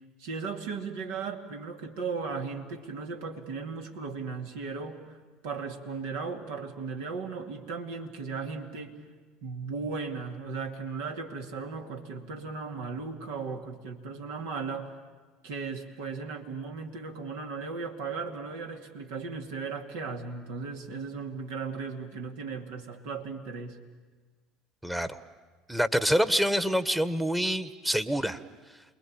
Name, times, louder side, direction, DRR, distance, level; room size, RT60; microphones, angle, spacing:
voice 1, 0.2-5.2 5.4-9.0 9.4-14.9 15.4-23.8, right 4 dB, 70° right, 3 dB, 2.4 m, -36 dB
voice 2, 24.8-25.2 25.7-28.4, equal, 5° right, 11 dB, 1.3 m, -26 dB
28.5 x 21.5 x 8.8 m, 1.4 s
hypercardioid pair, 70°, 0 cm